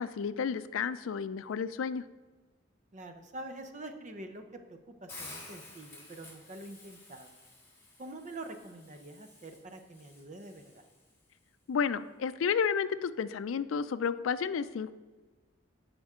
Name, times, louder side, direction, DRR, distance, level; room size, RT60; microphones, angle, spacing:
voice 1, 0.0-2.0 11.7-14.9, left 6 dB, 85° left, 14 dB, 0.4 m, -31 dB
voice 2, 2.9-7.3 8.0-10.8, right 2 dB, 40° right, 7 dB, 0.7 m, -46 dB
Hiss, 5.1-11.2, left 2 dB, 15° left, 3.0 m, -52 dB
11.5 x 5.2 x 3.6 m, 1.3 s
head